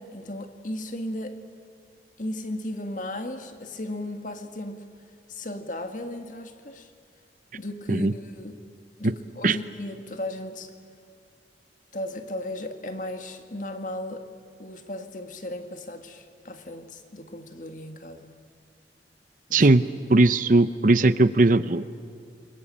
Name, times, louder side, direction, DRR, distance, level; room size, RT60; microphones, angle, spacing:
voice 1, 0.0-1.4 2.2-4.9 5.3-6.9 7.5-8.6 9.0-10.7 11.9-14.3 14.6-18.3 19.5-19.7, left 1 dB, 45° left, 7 dB, 1.8 m, -35 dB
voice 2, 19.5-19.8 20.1-21.9, right 2 dB, 50° right, 14 dB, 0.7 m, -18 dB
27.5 x 23.0 x 8.7 m, 2.3 s
head